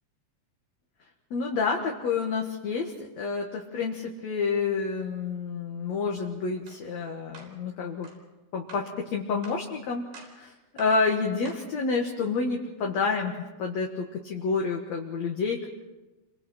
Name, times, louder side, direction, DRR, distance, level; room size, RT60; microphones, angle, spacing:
voice 1, 1.3-8.1 8.5-10.0 10.4-15.7, left 4 dB, 55° left, 0 dB, 2.5 m, -29 dB
sound 1, 6.7-6.8 7.3-7.6 8.0-8.2 8.7-8.9 9.4-9.7 10.1-10.4 10.8-11.0 11.5-11.7, right 2 dB, 85° right, 6.2 m, -48 dB
30.0 x 25.5 x 4.4 m, 1.1 s
omnidirectional pair, 4.5 m